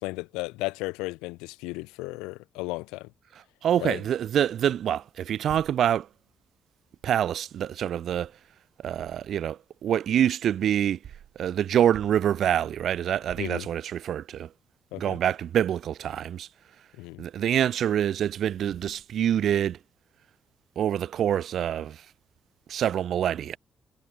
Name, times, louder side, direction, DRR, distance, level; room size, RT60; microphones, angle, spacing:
voice 1, 0.0-3.1 3.8-4.0 13.4-13.7 14.9-15.2 17.0-17.2, left 23 dB, 85° left, 2.5 m, -34 dB
voice 2, 3.6-6.1 7.0-8.3 8.8-11.0 11.4-14.5 15.0-16.5 17.2-19.8 20.8-22.1 22.7-23.6, right 10 dB, 65° right, 1.7 m, -26 dB
hypercardioid pair, 45°, 0 cm